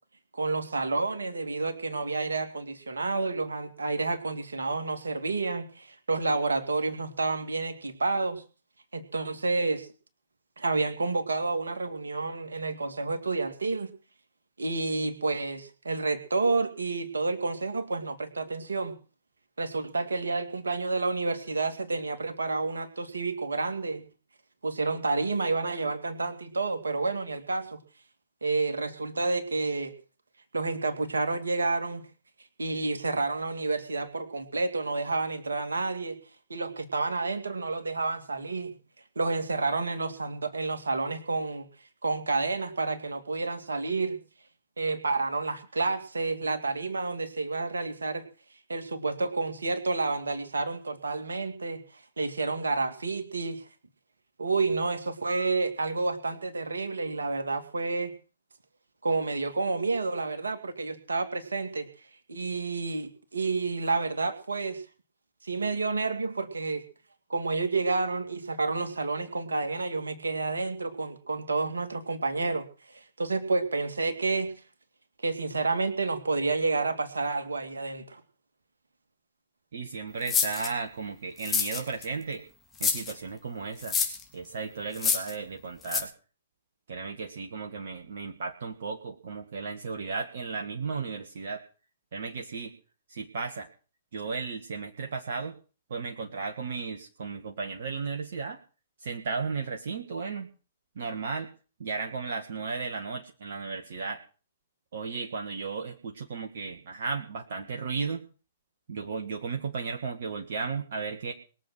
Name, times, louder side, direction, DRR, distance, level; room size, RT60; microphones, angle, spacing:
voice 1, 0.3-8.4 8.9-9.9 10.6-13.9 14.6-18.9 19.6-24.0 24.6-27.8 28.4-29.9 30.5-32.0 32.6-36.2 36.5-38.7 39.2-41.7 42.0-44.2 44.8-48.2 48.7-53.6 54.4-58.1 59.0-61.9 62.3-64.8 65.4-66.8 67.3-74.5 75.2-78.2, right 3 dB, 75° right, 7 dB, 2.6 m, -29 dB
voice 2, 79.7-82.4 82.8-84.0 84.3-86.1 86.9-91.6 92.1-92.7 93.1-93.7 94.1-95.5 95.9-98.6 99.0-100.5 100.9-101.5 101.8-104.2 104.9-108.2 108.9-111.3, right 4 dB, 55° right, 3 dB, 1.9 m, -34 dB
sound 1, 80.3-80.7 81.4-82.1 82.8-83.1 83.8-84.2 84.9-85.3 85.9-86.0, left 6 dB, 20° left, 3.2 m, -27 dB
22.0 x 7.6 x 6.3 m, 0.37 s
figure-of-eight pair, 115°, 0 cm